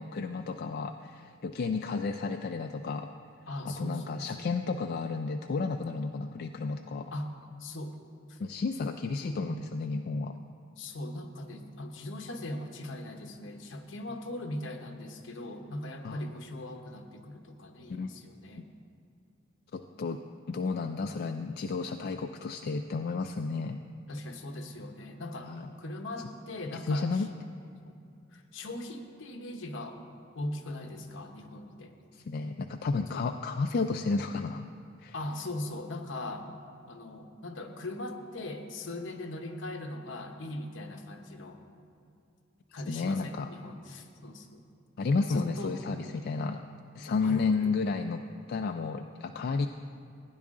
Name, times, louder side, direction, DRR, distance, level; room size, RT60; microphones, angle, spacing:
voice 1, 0.0-3.1 3.7-7.1 8.4-10.4 16.0-16.2 17.9-18.1 19.7-20.2 20.5-23.8 25.4-25.7 26.8-27.3 32.1-34.7 35.0-35.1 42.9-43.5 45.0-46.6 47.0-48.2 48.5-49.7, left 4 dB, 50° left, 6 dB, 0.3 m, -32 dB
voice 2, 3.5-4.5 7.1-7.3 7.6-8.0 8.3-8.4 9.2-9.6 10.8-18.7 24.1-27.3 27.8-30.0 30.3-31.9 33.1-33.3 35.1-36.5 36.9-41.6 42.7-44.6 45.3-46.3 47.2-47.7, left 1 dB, 75° left, 4 dB, 1.0 m, -40 dB
16.0 x 9.7 x 3.7 m, 2.5 s
head